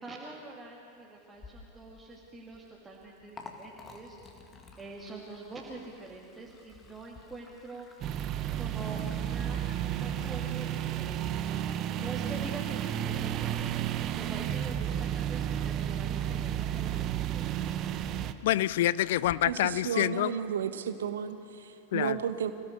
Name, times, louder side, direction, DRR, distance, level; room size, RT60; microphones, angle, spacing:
voice 1, 0.0-4.2 4.8-7.9 8.6-11.5 11.9-13.8 14.1-17.4, right 3 dB, 15° right, -3 dB, 2.4 m, -45 dB
Liquid, 1.3-19.3, left 4 dB, 20° left, 2.1 m, -56 dB
sound 1, 8.0-18.3, right 10 dB, 35° right, 0.9 m, -32 dB
voice 2, 18.4-20.3 21.9-22.2, left 14 dB, 55° left, 19 dB, 0.5 m, -27 dB
voice 3, 19.4-22.5, right 8 dB, 65° right, 10 dB, 1.2 m, -33 dB
26.5 x 17.0 x 6.7 m, 2.6 s
figure-of-eight pair, 90°, 0 cm